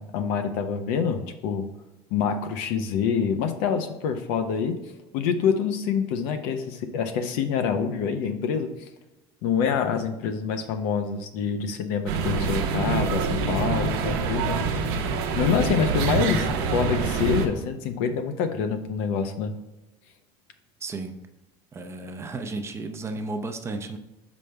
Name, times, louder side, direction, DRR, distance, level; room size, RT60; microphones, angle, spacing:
voice 1, 0.0-1.7 2.1-4.8 5.1-8.7 9.4-14.6 15.4-19.5, left 6 dB, 80° left, 8 dB, 0.8 m, -26 dB
sound 1, 12.1-17.5, right 4 dB, 85° right, 0.9 m, -25 dB
voice 2, 20.8-21.2 21.7-24.0, right 3 dB, 20° right, 7 dB, 0.6 m, -33 dB
6.5 x 5.2 x 3.3 m, 1.0 s
cardioid pair, 135°, 13 cm